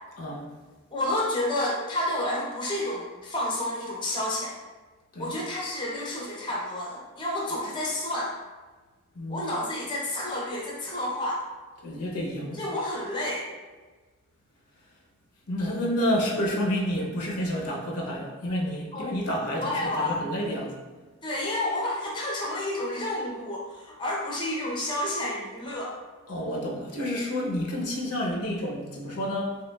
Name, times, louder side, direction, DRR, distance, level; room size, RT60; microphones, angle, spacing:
voice 1, 0.9-4.6 5.2-8.3 9.3-11.4 12.5-13.5 18.9-19.1 19.6-20.2 21.2-26.0, left 1 dB, 20° left, -4 dB, 0.6 m, -30 dB
voice 2, 11.8-12.6 15.5-20.8 26.3-29.6, equal, 70° left, -2 dB, 0.7 m, -29 dB
3.2 x 3.0 x 2.2 m, 1.3 s
head